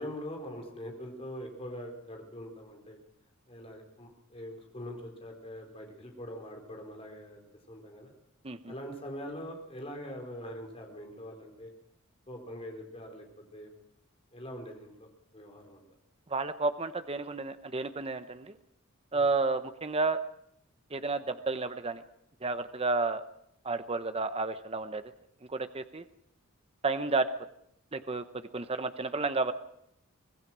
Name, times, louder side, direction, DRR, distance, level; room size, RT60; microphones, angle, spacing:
voice 1, 0.0-3.0 3.5-7.4 7.7-8.1 8.7-11.7 12.3-13.3 13.5-13.7 14.3-15.1 15.3-15.8 19.1-19.3, equal, 25° left, 2 dB, 4.3 m, -43 dB
voice 2, 16.3-18.5 19.1-20.2 20.9-22.0 22.4-23.2 23.6-25.0 25.5-26.0 26.8-27.3 27.9-28.2 28.5-29.5, right 3 dB, 25° right, 10 dB, 0.8 m, -31 dB
24.5 x 18.5 x 6.2 m, 0.73 s
head